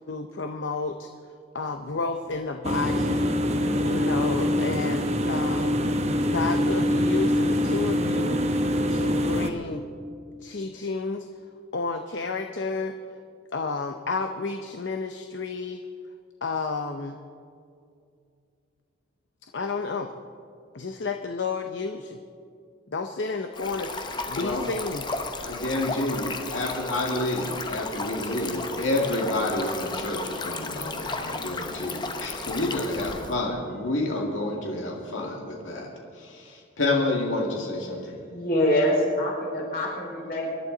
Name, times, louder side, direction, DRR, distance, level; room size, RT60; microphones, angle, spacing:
voice 1, 0.1-1.1 1.5-3.4 3.8-5.8 6.2-8.4 8.9-9.9 10.4-11.3 11.7-12.9 13.5-15.8 16.4-17.2 19.4-20.1 20.7-22.2 22.9-23.9 24.3-25.1, left 4 dB, 70° left, 6 dB, 0.7 m, -31 dB
sound 1, 2.6-9.5, equal, 35° right, 0.9 m, -24 dB
Stream, 23.5-33.3, left 3 dB, 25° left, 0.8 m, -34 dB
voice 2, 25.4-35.9 36.1-38.2, left 2 dB, 85° left, -1 dB, 2.2 m, -29 dB
voice 3, 38.3-40.5, left 1 dB, 50° left, -3 dB, 4.5 m, -25 dB
25.0 x 11.5 x 4.0 m, 2.4 s
head